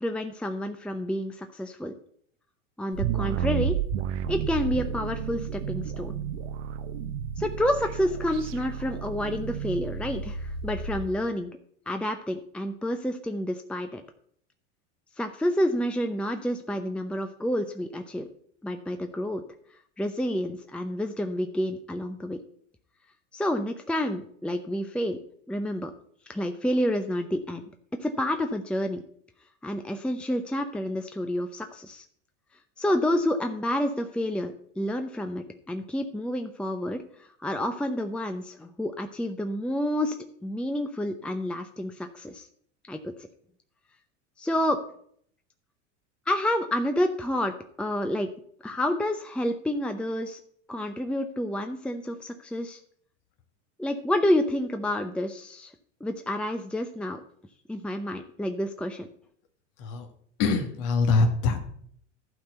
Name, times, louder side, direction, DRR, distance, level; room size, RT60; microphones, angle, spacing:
voice 1, 0.0-1.9 2.8-3.8 4.3-6.1 7.4-11.5 11.9-14.0 15.2-18.3 18.6-19.4 20.0-22.4 23.3-25.2 25.5-25.9 26.3-27.6 28.0-29.0 29.6-32.0 32.8-40.2 40.4-42.5 42.9-43.1 44.4-44.8 46.3-48.3 48.6-50.4 50.7-52.8 53.8-55.7 56.0-57.2 57.7-59.1, left 1 dB, 5° left, 6 dB, 0.6 m, -29 dB
sound 1, 2.9-11.1, right 7 dB, 70° right, 1.0 m, -32 dB
voice 2, 60.4-61.6, left 3 dB, 55° left, 5 dB, 1.5 m, -23 dB
12.0 x 4.4 x 7.8 m, 0.64 s
hypercardioid pair, 95°, 37 cm